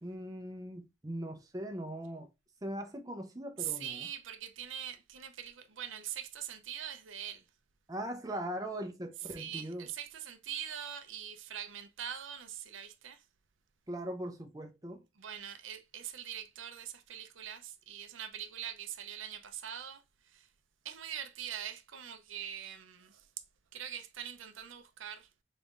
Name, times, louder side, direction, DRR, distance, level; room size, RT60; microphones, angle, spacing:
voice 1, 0.0-2.3 2.6-4.1 7.9-9.9 13.9-15.0, right 1 dB, 15° right, 0.6 m, -40 dB
voice 2, 3.6-7.5 9.2-13.3 15.2-20.5 20.8-23.3 23.7-25.3, right 9 dB, 70° right, 0.6 m, -43 dB
4.1 x 3.6 x 2.4 m
head